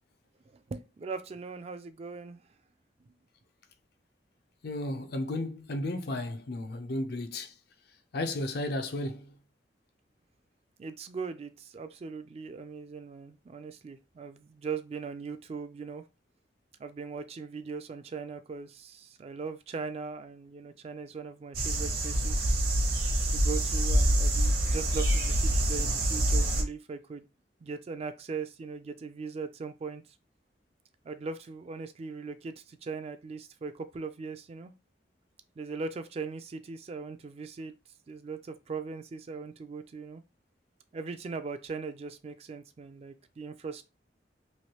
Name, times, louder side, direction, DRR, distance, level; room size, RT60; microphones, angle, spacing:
voice 1, 0.5-2.4 10.8-16.0 16.8-22.7 23.3-27.3 27.6-30.0 31.0-34.7 35.6-37.7 38.1-40.2 40.9-43.9, right 4 dB, 35° right, 0.3 m, -39 dB
voice 2, 4.6-7.5 8.1-9.3, left 1 dB, 60° left, 0.5 m, -33 dB
sound 1, 21.5-26.6, right 1 dB, 55° right, 0.8 m, -26 dB
3.2 x 2.5 x 2.8 m
head